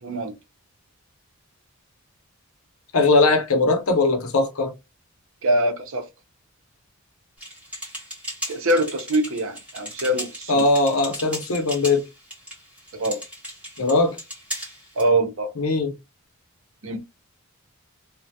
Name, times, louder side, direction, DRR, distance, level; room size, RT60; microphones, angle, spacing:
voice 1, 0.0-0.3 5.4-6.1 8.5-10.6 12.9-13.2 15.0-15.5 16.8-17.0, right 1 dB, 60° right, 0.6 m, -23 dB
voice 2, 2.9-4.7 10.5-12.0 13.8-14.2 15.6-15.9, left 3 dB, 70° left, 0.7 m, -20 dB
sound 1, 7.4-15.1, equal, 5° right, 0.9 m, -36 dB
2.2 x 2.1 x 2.6 m
head